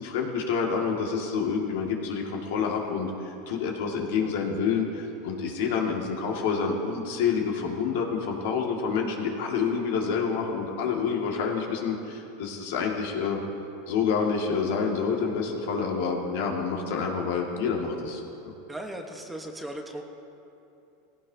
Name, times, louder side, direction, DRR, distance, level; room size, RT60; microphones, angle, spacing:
voice 1, 0.0-13.4 13.9-18.5, left 5 dB, 75° left, 0 dB, 2.0 m, -28 dB
voice 2, 18.7-20.1, right 1 dB, 10° right, 3 dB, 1.1 m, -37 dB
17.5 x 16.5 x 2.8 m, 2.8 s
supercardioid pair, 130°, 0 cm